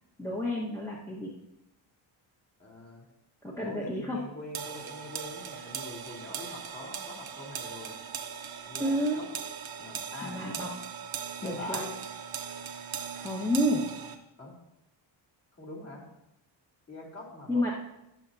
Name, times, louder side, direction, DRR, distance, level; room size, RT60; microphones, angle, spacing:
voice 1, 0.2-1.4 3.4-4.2 8.8-9.2 10.2-10.7 11.4-11.8 13.1-13.9 17.5-17.7, equal, 5° left, -6 dB, 1.4 m, -30 dB
voice 2, 2.6-3.0 3.6-7.9 8.6-9.3 9.8-10.4 11.4-11.9 14.4-14.6 15.6-16.1 16.9-17.7, left 1 dB, 30° left, -3 dB, 3.2 m, -43 dB
sound 1, 4.5-14.2, right 7 dB, 50° right, 1.1 m, -39 dB
18.5 x 7.1 x 2.8 m, 0.87 s
cardioid pair, 145°, 46 cm